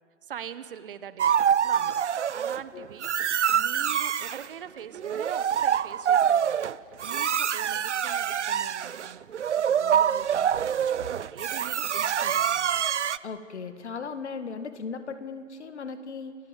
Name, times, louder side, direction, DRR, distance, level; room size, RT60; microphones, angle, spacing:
voice 1, 0.2-2.1 2.3-6.7 7.0-9.3 9.7-12.8, right 9 dB, 45° right, 12 dB, 1.4 m, -43 dB
sound 1, 1.2-2.6 3.0-4.5 4.9-13.2, right 9 dB, 65° right, 0.7 m, -25 dB
voice 2, 13.2-16.4, left 5 dB, 60° left, 9 dB, 2.0 m, -37 dB
30.0 x 16.0 x 7.5 m, 2.1 s
hypercardioid pair, 145°, 38 cm